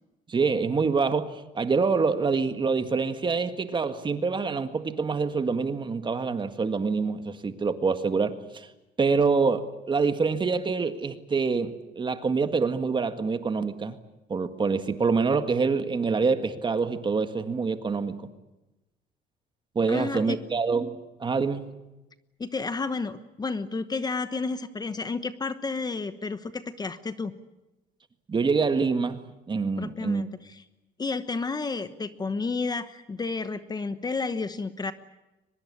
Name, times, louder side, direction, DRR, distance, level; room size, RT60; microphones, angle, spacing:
voice 1, 0.3-8.7 9.0-14.0 14.3-18.3 19.8-21.7 28.3-30.2, right 4 dB, 30° right, 9 dB, 1.8 m, -26 dB
voice 2, 19.9-20.4 22.4-27.3 29.8-30.6 31.0-34.9, left 4 dB, 25° left, 12 dB, 1.1 m, -31 dB
23.5 x 21.0 x 8.7 m, 1.0 s
cardioid pair, 110°, 17 cm